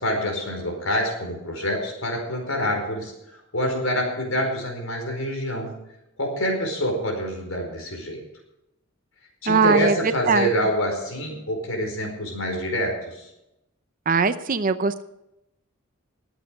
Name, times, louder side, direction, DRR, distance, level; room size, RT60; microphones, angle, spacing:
voice 1, 0.0-5.7 6.2-8.2 9.4-13.3, equal, 70° left, 3 dB, 4.8 m, -26 dB
voice 2, 9.5-10.5 14.1-15.0, right 4 dB, 40° right, 12 dB, 0.6 m, -21 dB
20.5 x 8.3 x 5.1 m, 0.87 s
head